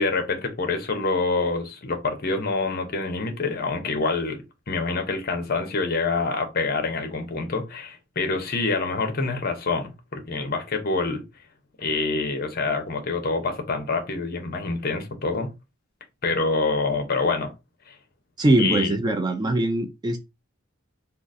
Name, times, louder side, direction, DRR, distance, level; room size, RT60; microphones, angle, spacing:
voice 1, 0.0-11.2 11.8-15.5 16.2-17.5 17.9-18.0 18.6-19.0, left 3 dB, 45° left, 0.7 m, -26 dB
voice 2, 18.4-20.2, right 1 dB, 20° right, 0.3 m, -22 dB
3.7 x 2.3 x 2.5 m
head